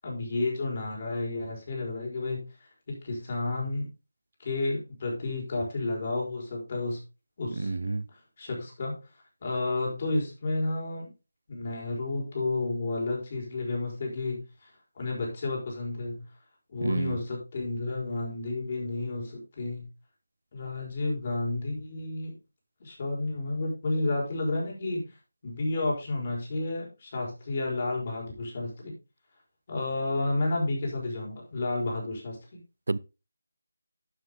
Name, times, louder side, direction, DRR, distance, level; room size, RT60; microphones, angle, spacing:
voice 1, 0.0-2.4 2.9-3.9 4.4-7.0 7.4-7.7 8.4-9.0 9.4-11.1 11.5-14.7 15.0-16.2 16.7-19.9 20.5-22.3 22.8-25.0 25.4-28.9 29.7-32.6, left 2 dB, 35° left, 5.2 m, -31 dB
voice 2, 7.6-8.0 16.8-17.2 32.9-33.0, right 3 dB, 60° right, 0.6 m, -29 dB
11.5 x 7.5 x 3.7 m
figure-of-eight pair, 160°, 0 cm